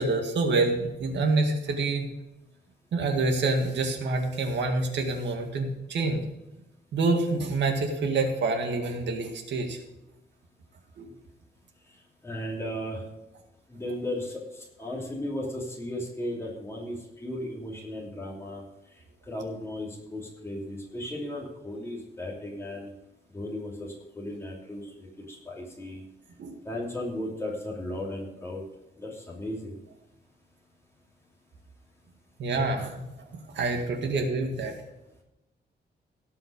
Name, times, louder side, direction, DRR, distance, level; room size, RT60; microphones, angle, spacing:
voice 1, 0.0-2.1 2.9-6.2 6.9-9.8 11.0-11.1 26.4-26.6 32.4-33.3 33.5-34.7, right 3 dB, 90° right, 3 dB, 2.0 m, -27 dB
voice 2, 12.2-13.0 13.7-18.6 19.2-22.9 23.3-26.0 26.6-28.6 29.0-29.7, left 1 dB, 15° left, -3 dB, 3.0 m, -35 dB
17.5 x 5.8 x 5.2 m, 0.95 s
wide cardioid pair, 180°, 18 cm